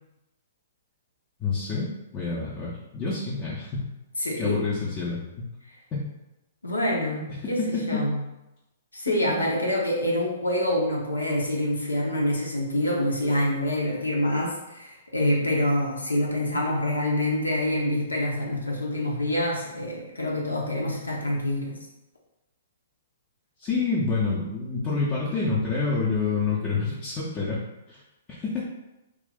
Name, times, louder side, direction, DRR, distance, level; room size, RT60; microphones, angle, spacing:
voice 1, 1.4-3.9 4.4-5.5 5.9-6.0 7.4-8.0 23.6-27.6 27.9-28.0 28.4-28.6, left 4 dB, 25° left, -8 dB, 0.7 m, -28 dB
voice 2, 4.2-4.6 6.6-8.2 8.9-21.8, left 1 dB, 80° left, -2 dB, 0.8 m, -26 dB
3.0 x 2.5 x 3.5 m, 0.96 s
figure-of-eight pair, 115°, 0 cm